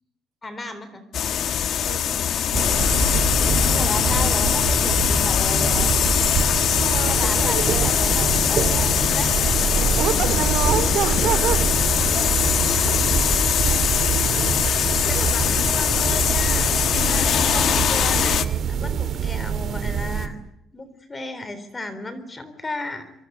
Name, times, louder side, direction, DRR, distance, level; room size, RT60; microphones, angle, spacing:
voice 1, 0.4-1.0 3.7-6.0 6.9-9.3 12.7-13.2 15.1-20.4 20.7-23.1, left 2 dB, 20° left, 13 dB, 3.8 m, -34 dB
sound 1, 1.1-18.5, left 9 dB, 55° left, 1.3 m, -21 dB
sound 2, 2.5-20.3, right 7 dB, 50° right, 2.9 m, -25 dB
voice 2, 6.7-8.0 10.0-11.7 12.1-13.0 13.6-14.7 17.5-18.3, right 10 dB, 65° right, 13 dB, 2.6 m, -29 dB
sound 3, 13.1-18.2, right 4 dB, 25° right, 4.4 m, -34 dB
26.5 x 23.5 x 8.1 m, 0.77 s
cardioid pair, 155°, 0 cm